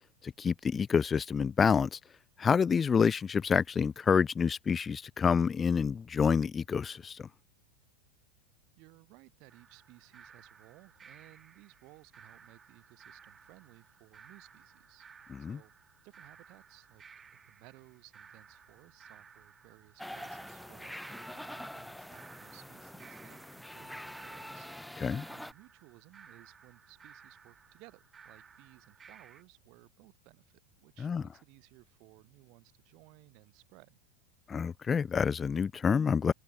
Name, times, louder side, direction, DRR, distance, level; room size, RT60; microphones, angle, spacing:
voice 1, 0.4-2.0 2.4-7.3 15.4-15.6 25.0-25.3 31.0-31.2 34.5-36.3, left 6 dB, 25° left, 0.5 m, -28 dB
voice 2, 8.8-15.1 15.4-15.7 16.0-17.0 17.4-34.0, right 27 dB, 55° right, 5.1 m, -59 dB
sound 1, 9.5-29.4, right 6 dB, 25° right, 6.9 m, -57 dB
sound 2, 20.0-25.5, left 1 dB, ahead, 3.2 m, -45 dB
hypercardioid pair, 95°, 0 cm